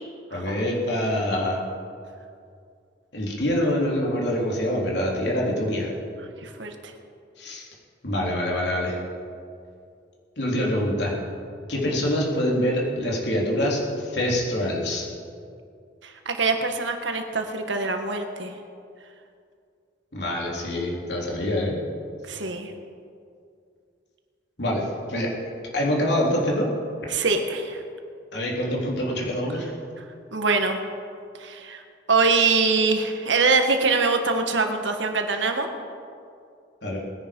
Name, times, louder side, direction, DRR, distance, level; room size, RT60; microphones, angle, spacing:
voice 1, 0.3-1.6 3.1-5.9 7.4-7.7 8.0-9.0 10.4-11.2 11.7-15.1 20.1-21.8 24.6-25.3 25.7-26.7 28.3-29.7 32.4-32.5 36.8-37.0, left 1 dB, 70° left, -3 dB, 3.6 m, -25 dB
voice 2, 6.4-6.9 16.0-18.5 22.3-22.7 27.1-27.8 30.3-30.8 31.4-31.8 32.1-35.7, right 4 dB, 85° right, 5 dB, 1.6 m, -23 dB
20.5 x 10.0 x 5.3 m, 2.3 s
head